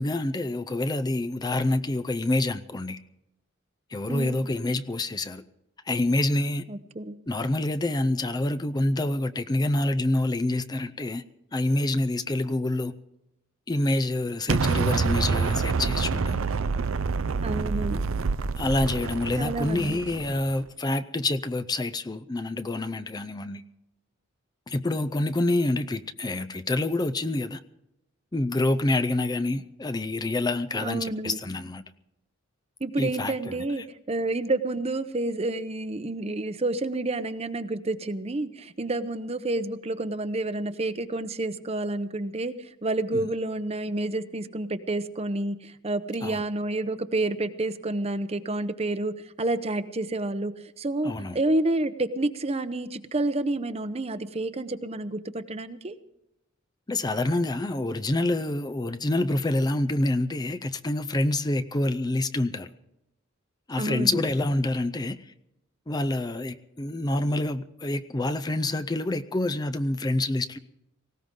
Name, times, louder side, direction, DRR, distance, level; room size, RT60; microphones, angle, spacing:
voice 1, 0.0-3.0 3.9-5.4 5.9-6.7 7.3-11.2 11.5-12.9 13.7-16.4 18.6-23.6 24.7-27.6 28.3-31.8 33.0-33.8 46.2-46.4 51.0-51.4 56.9-62.7 63.7-65.3 65.9-70.6, left 2 dB, 20° left, 10 dB, 0.5 m, -27 dB
voice 2, 4.1-4.4 6.7-7.2 17.4-18.0 19.4-20.0 30.7-31.4 32.8-55.9 63.8-64.2, right 2 dB, 30° right, 12 dB, 0.8 m, -29 dB
Explosion, 14.5-20.5, right 4 dB, 85° right, 0.6 m, -27 dB
19.0 x 17.5 x 3.8 m, 0.86 s
head